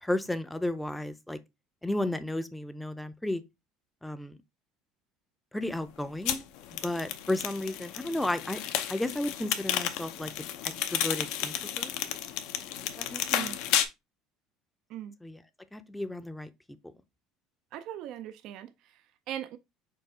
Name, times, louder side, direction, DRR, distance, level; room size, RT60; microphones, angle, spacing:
voice 1, 0.0-1.4 1.8-3.4 4.0-4.4 5.5-6.4 6.7-8.6 8.9-10.5 10.9-11.9 13.0-13.6 15.2-15.4 15.7-16.5, left 1 dB, 5° left, 0.5 m, -33 dB
sound 1, 6.3-13.9, left 11 dB, 75° left, 0.6 m, -32 dB
voice 2, 13.3-13.6 14.9-15.2 17.7-19.6, right 11 dB, 60° right, 0.4 m, -40 dB
4.6 x 2.4 x 4.8 m
supercardioid pair, 115°, 0 cm